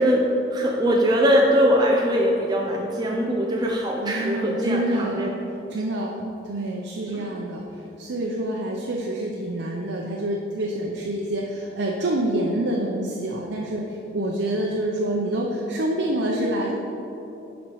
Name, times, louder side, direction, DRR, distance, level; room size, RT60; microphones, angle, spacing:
voice 1, 0.0-5.3 7.1-7.3, equal, 20° right, -1 dB, 0.5 m, -21 dB
voice 2, 4.0-5.3 5.7-7.6 8.0-16.8, right 1 dB, 75° right, -1 dB, 0.6 m, -27 dB
7.2 x 5.2 x 4.7 m, 2.8 s
head